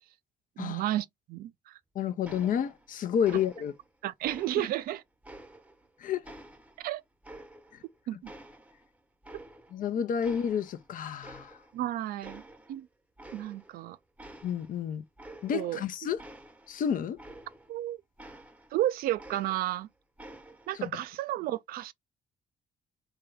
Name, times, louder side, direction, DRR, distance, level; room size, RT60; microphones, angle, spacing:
voice 1, 0.6-1.8 4.0-5.0 6.8-7.0 8.1-8.3 11.7-12.4 12.7-12.9 13.3-14.0 15.5-15.8 17.7-18.0 18.7-19.9 20.7-21.9, right 14 dB, 70° right, 0.4 m, -32 dB
voice 2, 1.9-3.7 6.0-6.2 7.7-7.8 9.7-11.6 14.4-15.0 15.4-16.2 16.7-17.2 20.7-20.9, left 8 dB, 60° left, 0.6 m, -30 dB
sound 1, 2.2-3.0 3.2-3.9 4.2-5.9 6.2-7.9 8.2-9.9 10.2-10.9 11.2-11.9 12.2-12.8 13.2-13.8 14.2-17.8 18.2-19.8 20.2-20.8, right 1 dB, 10° right, 0.7 m, -50 dB
3.5 x 2.2 x 3.4 m
hypercardioid pair, 50°, 16 cm